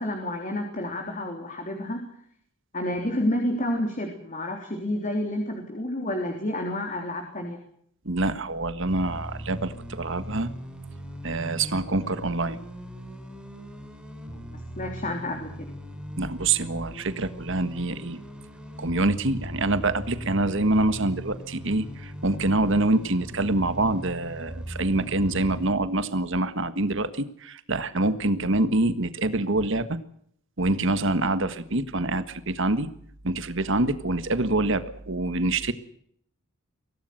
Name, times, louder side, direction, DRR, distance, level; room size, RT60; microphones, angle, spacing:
voice 1, 0.0-2.1 2.7-7.6 14.3-15.7, left 1 dB, 35° left, 3 dB, 3.5 m, -30 dB
voice 2, 8.0-10.5 11.2-12.6 16.2-18.2 18.8-30.0 30.6-32.9 33.2-35.7, right 2 dB, 60° right, 11 dB, 1.6 m, -25 dB
sound 1, 8.9-25.7, equal, 5° right, 5.3 m, -39 dB
24.5 x 17.5 x 7.9 m, 0.66 s
head